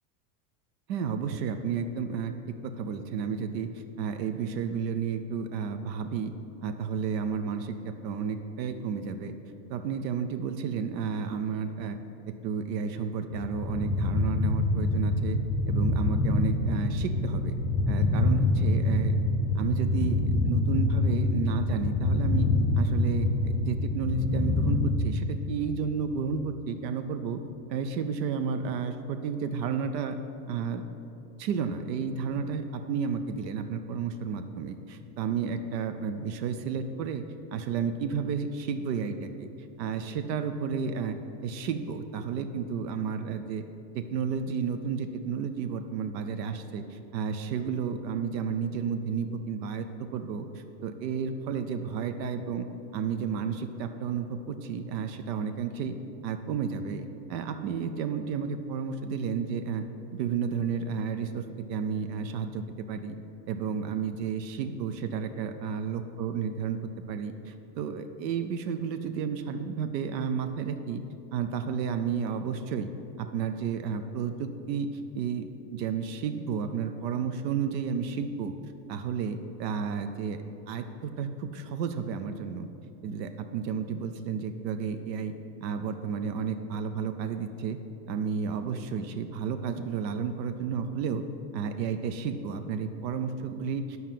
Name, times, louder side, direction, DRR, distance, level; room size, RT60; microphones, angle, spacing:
voice 1, 0.9-2.3 2.6-6.3 6.6-9.3 9.7-12.0 12.3-15.4 15.7-17.6 17.9-19.2 19.5-22.5 22.7-27.4 27.7-30.2 30.5-30.9 31.4-37.2 37.5-39.5 39.8-41.2 41.4-43.6 43.9-49.9 50.1-52.7 52.9-55.9 56.2-59.8 60.1-63.2 63.5-66.8 67.1-71.0 71.3-72.9 73.2-74.9 75.1-78.5 78.9-82.7 83.0-85.3 85.6-87.8 88.1-91.2 91.5-94.0, right 6 dB, 90° right, 8 dB, 0.8 m, -32 dB
sound 1, 13.3-24.9, left 2 dB, 20° left, 0.5 m, -26 dB
9.4 x 5.6 x 7.5 m, 2.7 s
supercardioid pair, 175°, 48 cm